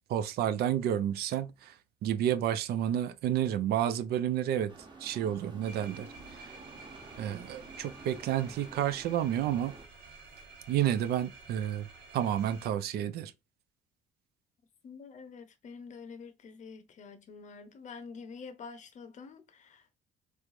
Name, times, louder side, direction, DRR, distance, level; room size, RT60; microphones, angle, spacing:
voice 1, 0.1-1.7 2.0-4.7 5.0-6.1 7.2-9.7 10.7-11.9 12.1-13.3, right 10 dB, 70° right, 0.4 m, -30 dB
sound 1, 4.7-9.8, right 3 dB, 25° right, 1.1 m, -50 dB
sound 2, 5.6-12.7, right 3 dB, 85° right, 1.3 m, -51 dB
voice 2, 14.8-19.9, left 5 dB, 45° left, 0.7 m, -47 dB
3.3 x 3.1 x 2.5 m
cardioid pair, 110°, 17 cm